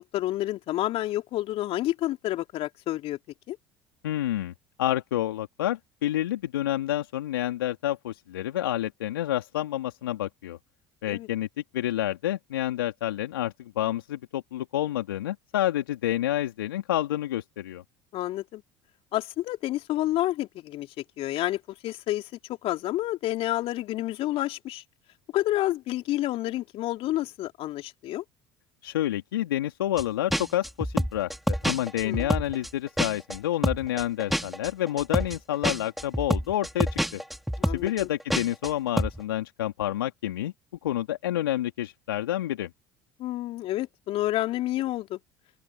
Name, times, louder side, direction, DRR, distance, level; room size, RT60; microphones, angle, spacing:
voice 1, 0.0-3.2 3.5-3.6 11.1-11.3 18.1-18.6 19.1-20.9 21.2-22.3 22.6-24.8 25.3-28.2 32.0-32.3 37.6-38.1 43.2-45.2, left 15 dB, 55° left, 3.4 m, -29 dB
voice 2, 4.0-4.5 4.8-10.6 11.0-17.8 28.8-37.2 37.7-40.5 40.8-42.7, left 13 dB, 80° left, 2.4 m, -29 dB
sound 1, 30.0-30.1 30.3-33.4 33.6-38.7 39.0-39.2, equal, ahead, 2.9 m, -27 dB
open air
hypercardioid pair, 65°, 12 cm